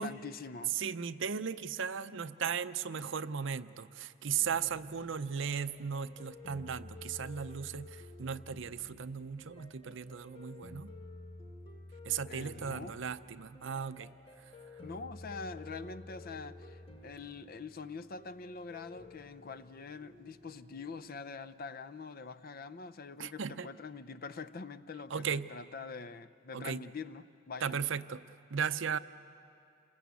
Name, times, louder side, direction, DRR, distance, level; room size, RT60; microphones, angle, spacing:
voice 1, 0.0-0.8 12.3-13.0 14.8-27.8, left 4 dB, 45° left, 0.6 m, -44 dB
voice 2, 0.8-10.9 12.0-14.1 23.2-23.7 25.1-25.5 26.5-26.8 27.6-28.2 28.5-29.0, right 7 dB, 65° right, 0.6 m, -36 dB
sound 1, 4.4-21.1, left 2 dB, 30° left, 1.7 m, -52 dB
29.0 x 20.5 x 8.3 m
head